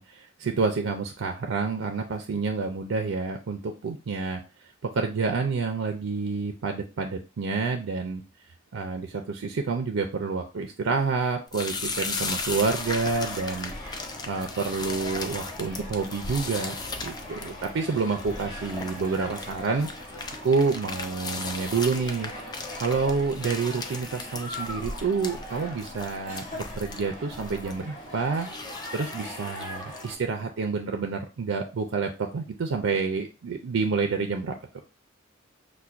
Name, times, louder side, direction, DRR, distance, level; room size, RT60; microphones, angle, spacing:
voice 1, 0.0-4.4 4.8-8.2 8.7-13.7 14.2-16.7 17.0-19.9 20.4-22.3 22.8-34.5, right 4 dB, 70° right, 4 dB, 0.4 m, -28 dB
sound 1, 11.5-30.2, left 3 dB, 20° left, 0.3 m, -37 dB
sound 2, 12.7-30.2, left 1 dB, 45° left, 2.2 m, -41 dB
5.6 x 2.1 x 2.4 m, 0.30 s
head